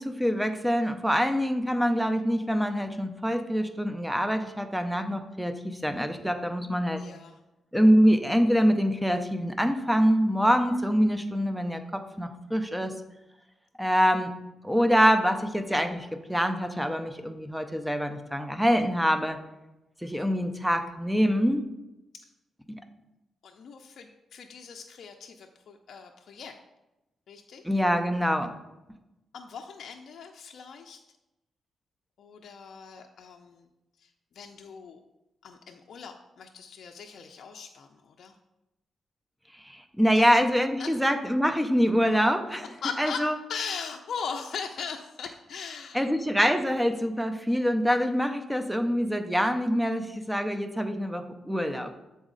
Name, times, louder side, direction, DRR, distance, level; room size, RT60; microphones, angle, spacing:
voice 1, 0.0-7.0 7.7-12.9 13.8-14.3 14.6-19.4 20.0-21.6 22.7-22.8 27.6-28.5 39.6-42.6 43.0-43.3 45.9-51.9, equal, ahead, 7 dB, 0.5 m, -25 dB
voice 2, 6.9-7.4 22.2-22.3 23.4-26.6 27.3-27.7 29.3-31.0 32.2-33.7 34.0-35.0 35.4-38.3 40.1-40.4 40.8-41.0 42.6-46.1, left 6 dB, 65° left, 3 dB, 0.4 m, -40 dB
7.1 x 4.0 x 3.8 m, 0.96 s
cardioid pair, 115°, 0 cm